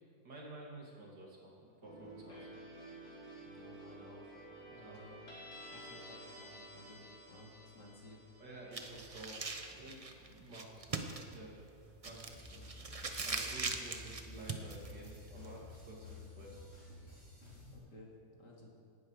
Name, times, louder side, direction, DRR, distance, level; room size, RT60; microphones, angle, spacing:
voice 1, 0.2-2.6 4.7-5.0 8.4-11.6 12.0-12.6 13.2-16.6, right 1 dB, 90° right, -3 dB, 3.4 m, -52 dB
sound 1, 1.8-10.7, right 1 dB, 60° left, 3.7 m, -53 dB
voice 2, 3.4-4.4 4.8-5.2 5.5-8.2 17.7-18.1 18.4-18.7, left 1 dB, 85° left, -2 dB, 3.3 m, -56 dB
sound 2, 8.7-15.9, right 3 dB, 30° right, 0.7 m, -42 dB
sound 3, 12.3-17.8, left 2 dB, 40° left, 5.1 m, -53 dB
18.0 x 12.0 x 5.0 m, 2.3 s
omnidirectional pair, 1.8 m